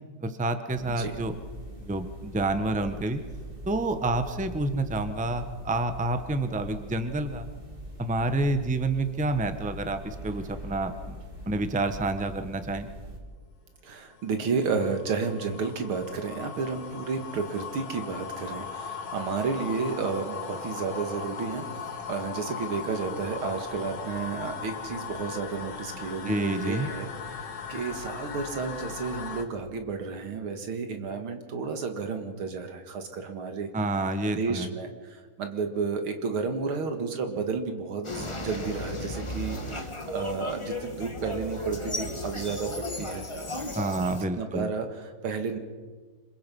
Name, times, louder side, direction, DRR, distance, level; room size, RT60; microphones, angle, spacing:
voice 1, 0.2-1.3 1.9-3.2 3.7-7.5 8.0-11.2 11.5-12.9 26.3-26.9 33.7-34.7 43.8-44.7, right 2 dB, 5° right, 9 dB, 0.8 m, -28 dB
sound 1, 0.7-13.2, right 1 dB, 25° right, 3.4 m, -42 dB
voice 2, 13.8-21.7 22.1-33.7 34.4-43.3 44.1-45.6, right 5 dB, 90° right, 6 dB, 2.7 m, -32 dB
sound 2, 13.9-29.4, left 6 dB, 80° left, 2.7 m, -38 dB
sound 3, 38.0-44.2, left 1 dB, 15° left, 1.4 m, -35 dB
26.5 x 22.5 x 5.5 m, 1.5 s
omnidirectional pair, 2.3 m